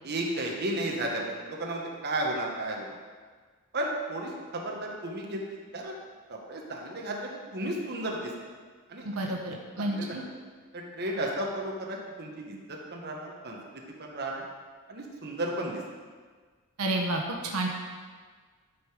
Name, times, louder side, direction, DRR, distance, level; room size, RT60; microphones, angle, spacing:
voice 1, 0.0-2.9 3.7-5.9 6.3-8.3 8.9-10.3 10.7-13.6 14.0-14.4 14.9-15.8, right 1 dB, 50° right, -1 dB, 1.3 m, -34 dB
voice 2, 9.0-10.2 16.8-17.7, right 2 dB, 90° right, 1 dB, 1.1 m, -30 dB
11.5 x 4.9 x 5.0 m, 1.5 s
head